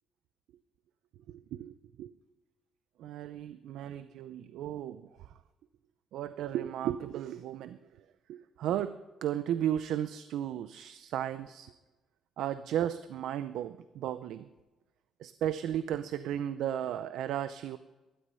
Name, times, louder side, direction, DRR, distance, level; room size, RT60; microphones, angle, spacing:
voice 1, 1.3-1.7 2.0-2.1 3.0-5.0 6.1-7.8 8.3-8.9 9.2-11.7 12.4-14.5 15.2-17.8, right 10 dB, 85° right, 12 dB, 0.6 m, -34 dB
16.0 x 12.5 x 5.6 m, 1.1 s
cardioid pair, 90°, 0 cm